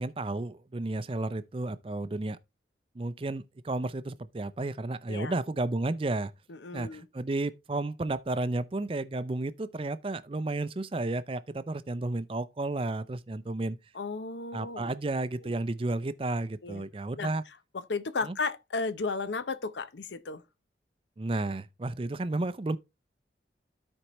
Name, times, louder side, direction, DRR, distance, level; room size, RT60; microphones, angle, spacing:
voice 1, 0.0-2.4 3.0-6.3 6.7-13.8 14.5-17.4 18.2-18.4 21.2-22.8, right 2 dB, 30° right, 0.4 m, -32 dB
voice 2, 6.5-7.1 13.9-14.9 16.6-16.8 17.2-17.3 17.7-20.4, left 4 dB, 80° left, 0.7 m, -34 dB
13.0 x 4.5 x 3.0 m
head